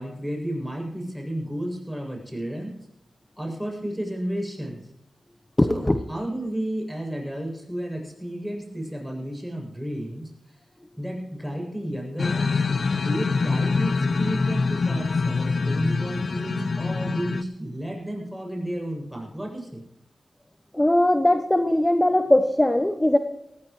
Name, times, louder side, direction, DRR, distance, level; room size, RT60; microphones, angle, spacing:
voice 1, 0.0-2.7 3.4-4.8 5.7-10.6 11.0-12.6 12.9-19.8, equal, 5° right, 0 dB, 7.3 m, -32 dB
voice 2, 5.6-6.0 20.7-23.2, left 1 dB, 15° left, 8 dB, 1.0 m, -20 dB
sound 1, 12.2-17.4, left 4 dB, 65° left, 0.8 m, -24 dB
18.5 x 16.0 x 3.2 m, 0.87 s
cardioid pair, 65°, 0 cm